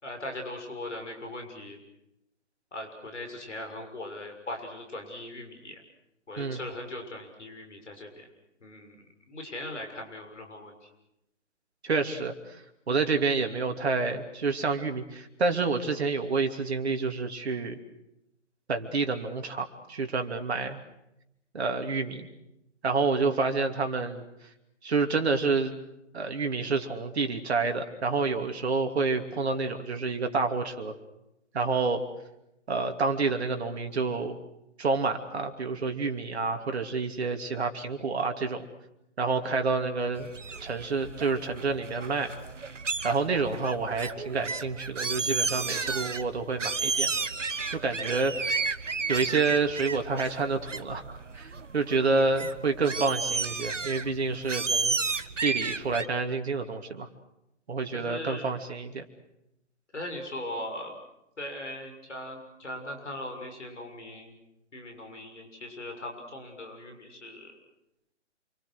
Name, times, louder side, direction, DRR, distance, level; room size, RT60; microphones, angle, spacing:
voice 1, 0.0-1.8 2.7-5.8 6.3-8.3 8.6-10.9 57.9-58.5 59.9-61.0 61.4-64.4 64.7-67.6, left 1 dB, 75° left, 4 dB, 6.7 m, -39 dB
voice 2, 6.4-6.7 11.8-17.8 18.7-20.8 21.5-22.3 22.8-24.2 24.8-25.7 26.1-30.9 31.5-32.0 32.7-34.4 34.8-38.7 39.2-40.3 40.6-42.4 43.0-47.1 47.7-48.4 49.1-55.0 55.4-57.1 57.7-59.0, right 4 dB, 60° right, 5 dB, 2.9 m, -28 dB
sound 1, 40.2-56.1, right 4 dB, 85° right, 1.2 m, -33 dB
28.5 x 24.0 x 6.5 m, 0.85 s
figure-of-eight pair, 140°, 36 cm